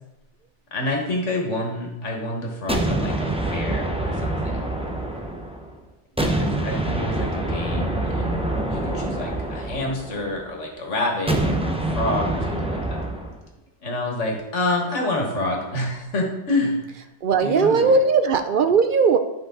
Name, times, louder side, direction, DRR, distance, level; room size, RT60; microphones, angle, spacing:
voice 1, 0.7-4.7 6.2-11.7 11.9-13.0 13.8-17.1 17.4-18.0, left 2 dB, 80° left, 1 dB, 1.9 m, -28 dB
sound 1, 2.7-5.7 6.2-10.4 11.3-13.4, right 2 dB, 5° right, 0.7 m, -26 dB
voice 2, 17.2-19.2, right 4 dB, 60° right, 8 dB, 0.6 m, -18 dB
10.5 x 5.3 x 3.8 m, 0.96 s
omnidirectional pair, 1.2 m